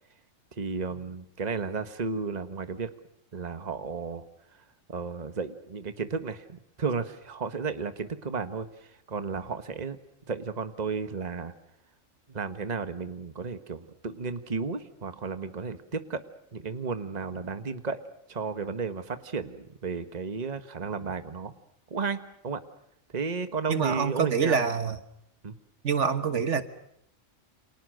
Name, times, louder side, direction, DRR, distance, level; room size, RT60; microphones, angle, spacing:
voice 1, 0.6-2.9 3.3-4.2 4.9-10.0 10.3-11.5 12.3-16.3 16.5-18.0 18.3-21.5 21.9-22.6 23.1-24.6 25.4-25.5, right 5 dB, 35° right, 10 dB, 1.4 m, -33 dB
voice 2, 23.7-25.0 25.8-26.6, right 6 dB, 65° right, 10 dB, 1.6 m, -26 dB
29.5 x 27.0 x 6.5 m, 0.73 s
omnidirectional pair, 1.4 m